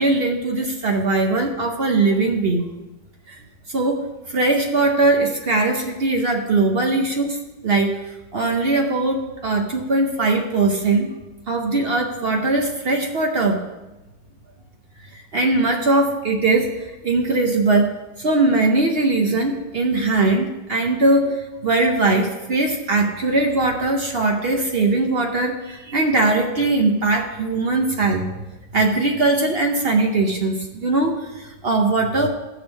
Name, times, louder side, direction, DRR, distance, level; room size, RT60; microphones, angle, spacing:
voice 1, 0.0-2.7 3.3-3.4 3.7-7.4 7.6-11.1 11.5-13.6 15.1-28.3 28.7-32.3, right 2 dB, 55° right, 3 dB, 0.7 m, -20 dB
14.5 x 6.2 x 3.5 m, 1.1 s
omnidirectional pair, 1.9 m